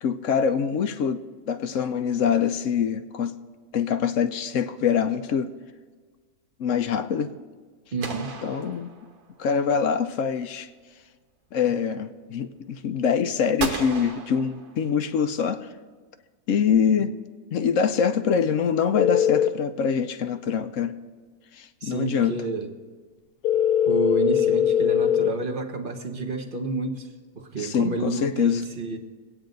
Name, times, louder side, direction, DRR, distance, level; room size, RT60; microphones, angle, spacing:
voice 1, 0.0-3.3 3.7-5.5 6.6-7.3 8.4-8.9 9.4-10.7 11.5-15.7 16.5-17.1 17.5-20.9 21.5-22.3 27.6-28.6, left 7 dB, 65° left, 9 dB, 0.9 m, -24 dB
voice 2, 7.9-8.3 21.8-22.7 23.8-29.0, right 3 dB, 35° right, 5 dB, 1.1 m, -30 dB
sound 1, 8.0-9.5 13.6-15.2, right 4 dB, 75° right, 1.8 m, -35 dB
sound 2, 19.0-19.5 23.4-25.3, left 9 dB, 80° left, 1.2 m, -21 dB
22.5 x 8.9 x 3.9 m, 1.5 s
omnidirectional pair, 1.7 m